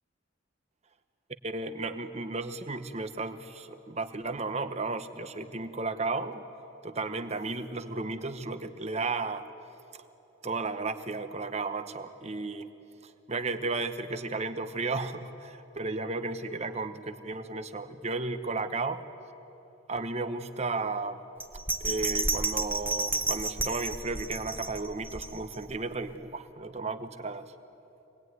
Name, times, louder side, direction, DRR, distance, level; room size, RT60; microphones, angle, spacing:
voice 1, 1.4-6.4 6.8-9.5 10.4-12.7 13.0-19.0 19.9-21.2 21.8-27.5, right 3 dB, 30° right, 10 dB, 1.0 m, -34 dB
Bell, 21.4-25.7 26.1-26.2, right 3 dB, 10° right, 0.9 m, -31 dB
26.5 x 19.5 x 9.5 m, 3.0 s
head